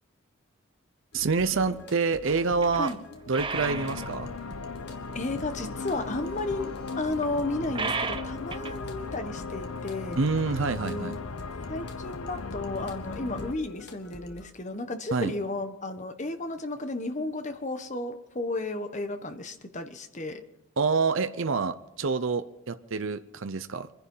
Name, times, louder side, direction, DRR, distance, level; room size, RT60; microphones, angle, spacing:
sound 1, 1.1-14.5, left 2 dB, 50° left, 1.6 m, -47 dB
voice 1, 1.1-2.9 3.3-4.3 10.2-11.2 15.1-15.3 20.8-23.9, right 4 dB, 65° right, 10 dB, 0.7 m, -27 dB
sound 2, 2.2-3.0 3.3-4.2 5.0-5.1 7.2-7.3 7.7-8.8 9.1-9.2, right 4 dB, 25° right, 0.7 m, -34 dB
sound 3, 3.5-13.5, left 4 dB, 85° left, 0.9 m, -37 dB
voice 2, 5.1-6.7 6.9-10.2 10.8-11.2 11.7-20.4, left 2 dB, 35° left, 8 dB, 1.3 m, -33 dB
23.5 x 10.5 x 5.6 m, 0.83 s
head